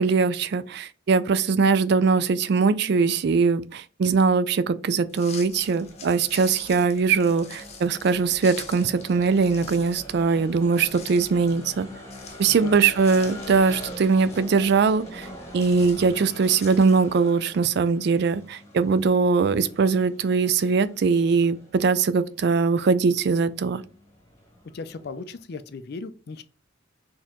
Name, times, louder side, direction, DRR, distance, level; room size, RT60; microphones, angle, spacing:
voice 1, 0.0-11.9 12.4-15.3 15.5-23.8, right 5 dB, 55° right, 0.3 m, -21 dB
sound 1, 5.1-17.3, left 5 dB, 35° left, 0.8 m, -46 dB
sound 2, 5.5-25.4, equal, 15° left, 1.2 m, -43 dB
voice 2, 12.5-12.8 24.7-26.4, left 4 dB, 55° left, 0.4 m, -37 dB
4.4 x 2.9 x 3.6 m
head